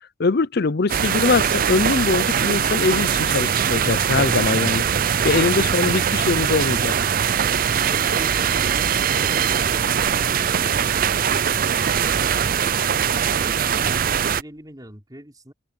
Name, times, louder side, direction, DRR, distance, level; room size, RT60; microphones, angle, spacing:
voice 1, 0.2-4.8 5.2-6.9, left 3 dB, 50° left, 0.6 m, -22 dB
sound 1, 0.9-14.4, right 8 dB, 45° right, 0.5 m, -21 dB
sound 2, 7.6-15.0, right 5 dB, 90° right, 7.9 m, -50 dB
voice 2, 7.7-12.7 13.3-15.5, equal, 20° right, 4.0 m, -42 dB
open air
head